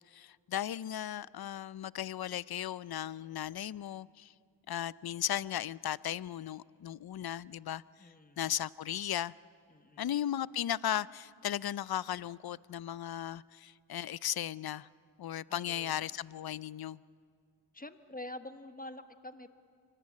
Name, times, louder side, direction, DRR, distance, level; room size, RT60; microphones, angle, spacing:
voice 1, 0.1-4.3 4.7-7.8 8.4-9.3 10.0-14.9 15.2-17.0, left 11 dB, 55° left, 20 dB, 0.5 m, -36 dB
voice 2, 8.0-8.5 9.7-10.1 15.5-16.1 17.7-19.5, left 1 dB, 20° left, 10 dB, 1.2 m, -47 dB
24.5 x 19.0 x 8.4 m, 2.2 s
cardioid pair, 50°, 45 cm